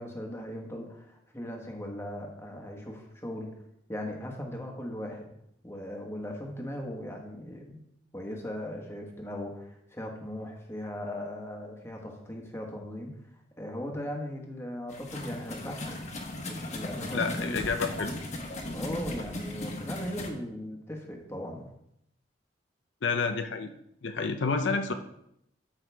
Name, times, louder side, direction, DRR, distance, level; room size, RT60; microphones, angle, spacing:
voice 1, 0.0-3.5 3.9-5.3 5.6-7.8 8.1-13.2 13.6-16.0 16.4-17.6 18.6-21.7, left 1 dB, 15° left, 1 dB, 1.4 m, -38 dB
sound 1, 14.9-20.3, left 1 dB, 35° left, 1.2 m, -37 dB
voice 2, 17.1-18.1 23.0-23.7 24.0-24.9, left 4 dB, 75° left, 7 dB, 0.6 m, -29 dB
13.0 x 5.6 x 3.5 m, 0.77 s
head